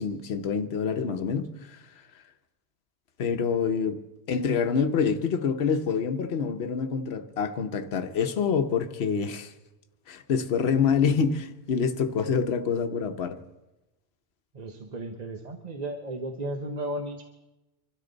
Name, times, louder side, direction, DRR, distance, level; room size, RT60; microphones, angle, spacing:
voice 1, 0.0-1.8 3.2-4.0 4.3-9.5 10.1-13.4, left 6 dB, 65° left, 1.1 m, -26 dB
voice 2, 14.5-17.2, right 1 dB, 40° right, 1.0 m, -34 dB
25.0 x 13.0 x 4.0 m
omnidirectional pair, 1.2 m